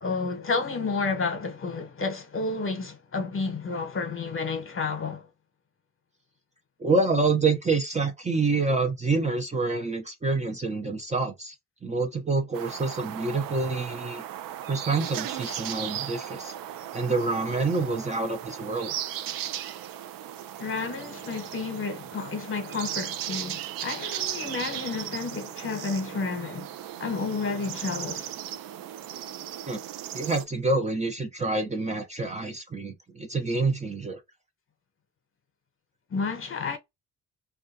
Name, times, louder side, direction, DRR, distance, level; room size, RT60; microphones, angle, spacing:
voice 1, 0.0-5.3 20.6-26.7 27.0-28.3 36.1-36.8, left 4 dB, 40° left, 0.9 m, -31 dB
voice 2, 6.8-11.5 11.8-14.2 14.7-16.5 16.9-18.9 29.7-29.8 30.1-34.2, right 3 dB, 20° right, 0.6 m, -27 dB
sound 1, 12.5-30.4, right 11 dB, 75° right, 0.5 m, -37 dB
2.3 x 2.2 x 2.6 m
cardioid pair, 70°, 34 cm